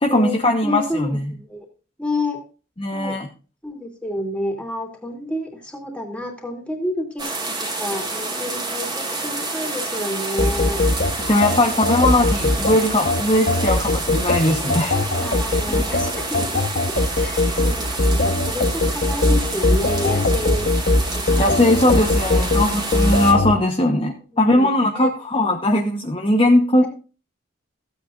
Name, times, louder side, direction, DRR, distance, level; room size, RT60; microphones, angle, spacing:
voice 1, 0.0-1.3 2.8-3.3 11.3-15.0 21.4-26.9, left 1 dB, 30° left, 2 dB, 1.1 m, -19 dB
voice 2, 0.6-1.7 2.0-2.4 2.9-3.2 3.6-10.8 11.7-12.0 15.1-16.6 17.1-20.7 21.1-22.0 22.3-22.4 24.5-24.7 24.9-25.1, left 1 dB, 5° left, 1 dB, 3.0 m, -29 dB
sound 1, 7.2-23.3, right 2 dB, 20° right, 2.6 m, -28 dB
sound 2, 10.4-23.5, left 2 dB, 50° left, 1.2 m, -20 dB
15.5 x 8.7 x 2.5 m, 0.34 s
head